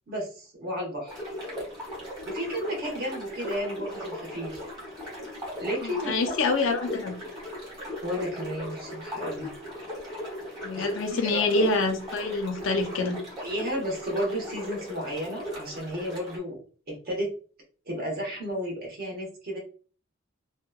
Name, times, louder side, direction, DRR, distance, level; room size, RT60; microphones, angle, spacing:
voice 1, 0.1-1.2 2.2-4.6 5.6-6.3 8.0-9.5 10.8-10.9 11.2-11.7 13.4-16.6 16.9-17.3 17.9-19.6, equal, 50° right, -1 dB, 0.9 m, -32 dB
sound 1, 1.1-16.4, left 1 dB, 20° right, 1.2 m, -38 dB
voice 2, 5.8-7.2 10.6-13.2, left 3 dB, 70° left, 5 dB, 0.6 m, -26 dB
2.8 x 2.1 x 2.2 m, 0.39 s
head